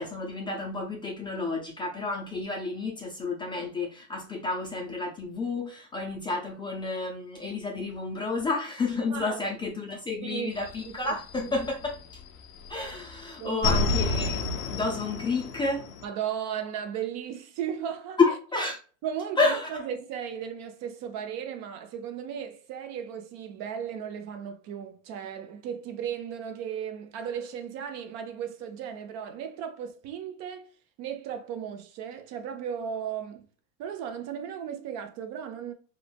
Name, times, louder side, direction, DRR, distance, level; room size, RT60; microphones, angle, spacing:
voice 1, 0.0-12.0 12.7-15.8 18.2-18.8 19.4-19.7, left 3 dB, 10° left, 0.4 m, -30 dB
voice 2, 9.1-9.4 10.2-10.5 10.9-11.1 13.4-13.7 16.0-18.2 19.0-30.7 31.0-33.5 33.8-35.7, right 8 dB, 40° right, 0.5 m, -35 dB
sound 1, 10.5-12.2 12.6-16.0, left 3 dB, 80° left, 0.7 m, -30 dB
3.1 x 2.0 x 2.3 m
supercardioid pair, 120°, 41 cm